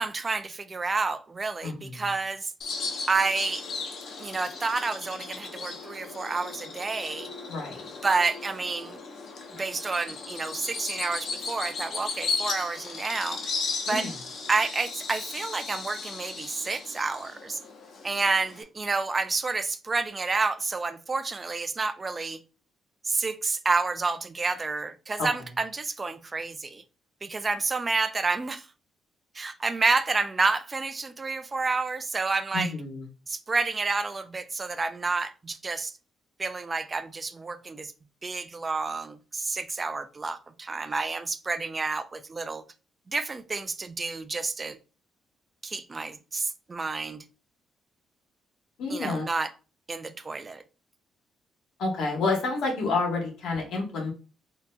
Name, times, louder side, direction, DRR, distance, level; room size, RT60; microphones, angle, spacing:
voice 1, 0.0-2.5 3.1-3.6 4.2-7.3 8.0-9.0 9.5-13.4 13.9-14.1 14.5-17.6 18.0-22.4 23.0-26.8 27.2-28.7 29.3-32.7 33.3-35.9 36.4-37.9 38.2-42.6 43.1-44.8 45.6-47.2 48.9-49.5 49.9-50.6, right 3 dB, 30° right, 0.3 m, -29 dB
voice 2, 1.6-2.1 7.5-7.8 13.9-14.1 25.2-25.3 32.5-33.1 48.8-49.2 51.8-54.1, left 3 dB, 75° left, 1.3 m, -29 dB
Bird vocalization bird call bird song, 2.6-18.6, left 4 dB, 60° left, 0.8 m, -36 dB
3.9 x 2.7 x 2.2 m
cardioid pair, 90°, 0 cm